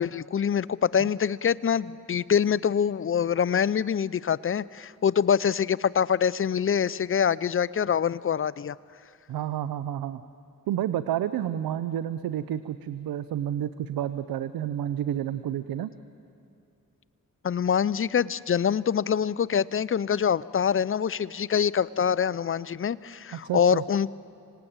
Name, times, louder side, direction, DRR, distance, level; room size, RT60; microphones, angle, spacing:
voice 1, 0.0-8.7 17.4-24.1, left 7 dB, 35° left, 19 dB, 0.6 m, -25 dB
voice 2, 9.3-10.2 10.7-15.9 23.3-23.8, right 11 dB, 85° right, 13 dB, 0.7 m, -30 dB
26.0 x 18.5 x 8.9 m, 2.5 s
cardioid pair, 50°, 35 cm